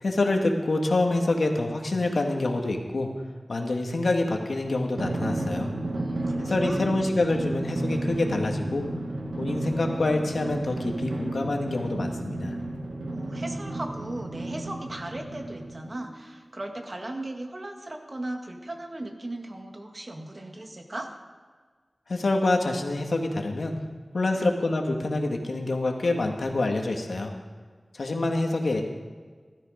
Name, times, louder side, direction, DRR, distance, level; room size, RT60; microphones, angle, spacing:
voice 1, 0.0-3.1 3.5-5.7 6.4-8.9 9.4-12.6 22.1-23.8 24.1-27.3 27.9-28.8, left 2 dB, 90° left, 2 dB, 1.8 m, -26 dB
Drum, 5.0-16.0, right 2 dB, 85° right, 1.9 m, -32 dB
voice 2, 6.0-6.9 13.1-21.1 24.3-24.5, right 1 dB, 45° right, 3 dB, 1.9 m, -37 dB
16.0 x 13.0 x 5.1 m, 1.5 s
wide cardioid pair, 60°, 0 cm